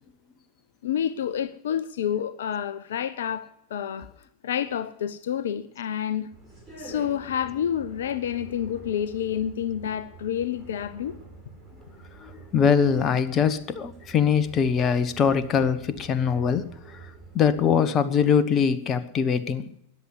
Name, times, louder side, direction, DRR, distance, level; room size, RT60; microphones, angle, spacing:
voice 1, 0.8-4.1 4.4-6.3 6.8-11.2, left 9 dB, 60° left, 0.6 m, -29 dB
sound 1, 6.3-17.8, right 3 dB, 10° right, 6.1 m, -47 dB
voice 2, 12.2-17.0 17.3-19.6, left 7 dB, 30° left, 1.1 m, -22 dB
14.0 x 10.0 x 9.7 m
figure-of-eight pair, 90°, 0 cm